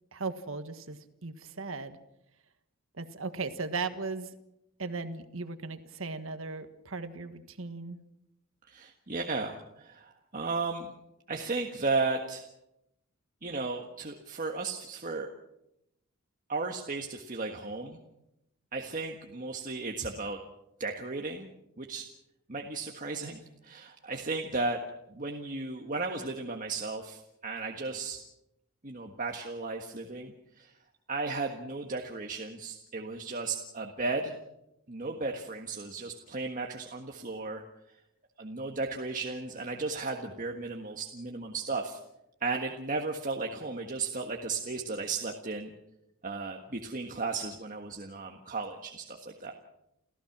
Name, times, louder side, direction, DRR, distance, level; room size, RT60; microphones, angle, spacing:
voice 1, 0.1-2.0 3.0-4.3 4.8-8.0, right 4 dB, 70° right, 9 dB, 1.6 m, -37 dB
voice 2, 8.7-10.9 11.3-12.5 13.4-15.3 16.5-18.0 18.7-20.4 20.8-21.5 21.8-22.1 22.5-24.8 25.1-28.2 28.8-30.7 31.1-34.4 34.9-37.6 38.4-42.0 42.4-45.7 46.2-49.5, right 3 dB, 40° right, 3 dB, 1.6 m, -35 dB
29.5 x 15.0 x 6.0 m, 0.84 s
head